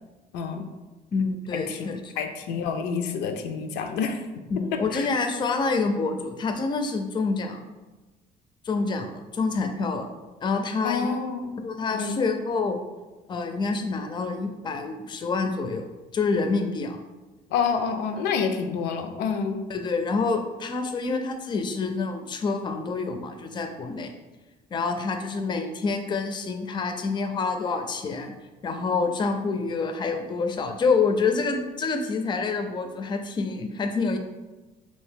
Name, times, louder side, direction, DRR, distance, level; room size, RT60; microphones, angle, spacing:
voice 1, 0.3-0.7 1.5-1.9 2.2-4.2 4.9-5.1 10.8-11.5 11.9-12.2 17.5-19.6, left 6 dB, 90° left, 6 dB, 0.4 m, -28 dB
voice 2, 1.1-2.1 4.5-7.6 8.6-10.1 10.4-11.1 11.6-12.8 13.3-15.9 16.1-17.0 19.7-24.1 24.7-28.3 28.6-34.2, left 4 dB, 25° left, 6 dB, 0.4 m, -27 dB
2.7 x 2.7 x 3.5 m, 1.2 s
cardioid pair, 110°, 17 cm